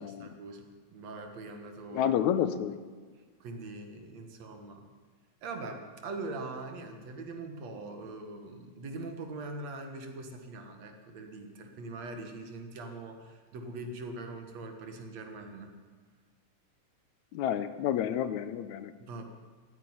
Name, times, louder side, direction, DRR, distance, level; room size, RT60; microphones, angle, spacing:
voice 1, 0.0-2.1 3.4-4.9 5.4-15.7 19.0-19.3, right 2 dB, 65° right, 5 dB, 2.7 m, -42 dB
voice 2, 1.9-2.8 17.3-18.9, left 10 dB, 80° left, 12 dB, 2.1 m, -30 dB
15.5 x 8.9 x 9.7 m, 1.5 s
omnidirectional pair, 3.4 m